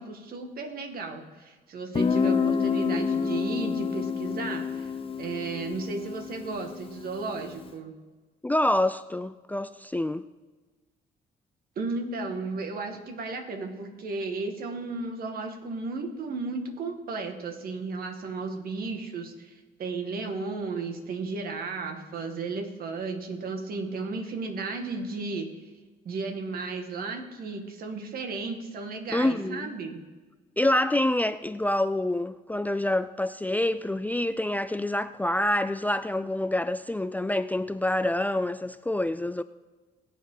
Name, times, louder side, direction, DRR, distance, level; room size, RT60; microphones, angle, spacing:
voice 1, 0.0-4.9 5.2-7.9 11.8-25.5 26.1-30.0, right 3 dB, 65° right, 2.0 m, -34 dB
Guitar, 1.9-7.5, left 6 dB, 35° left, 0.9 m, -28 dB
voice 2, 8.4-10.2 29.1-29.7 30.6-39.4, left 1 dB, 10° left, 0.4 m, -27 dB
21.5 x 7.5 x 3.9 m
cardioid pair, 80°, 16 cm